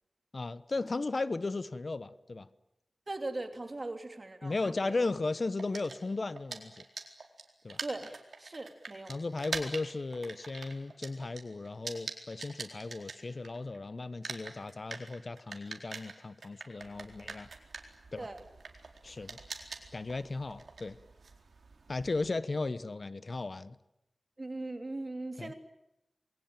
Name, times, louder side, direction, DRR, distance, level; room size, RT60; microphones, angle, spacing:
voice 1, 0.3-2.5 4.4-6.8 7.6-7.8 9.1-17.5 18.1-18.3 19.0-19.3 19.9-21.0 21.9-23.8 25.4-25.5, left 3 dB, 50° left, 15 dB, 1.0 m, -36 dB
voice 2, 3.1-5.0 7.8-9.1 9.6-9.7 18.2-18.4 24.4-25.5, right 2 dB, 40° right, 7 dB, 3.0 m, -40 dB
sound 1, 5.6-13.8 14.0-22.3, right 4 dB, 80° right, 4.2 m, -44 dB
28.0 x 21.5 x 9.1 m, 0.88 s
wide cardioid pair, 90°, 0 cm